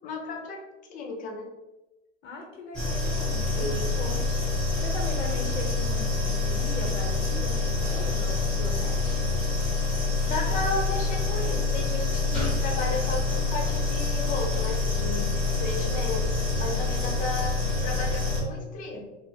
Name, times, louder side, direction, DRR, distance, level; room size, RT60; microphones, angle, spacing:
voice 1, 0.0-1.5 3.6-3.9 10.2-15.3 15.6-17.6 17.8-19.0, left 3 dB, 25° left, 1 dB, 0.4 m, -33 dB
voice 2, 2.2-4.3 4.8-9.4, left 2 dB, 80° left, 0 dB, 0.7 m, -39 dB
sound 1, 2.7-18.4, left 3 dB, ahead, 1.1 m, -26 dB
2.6 x 2.0 x 2.7 m, 1.0 s
hypercardioid pair, 110°, 36 cm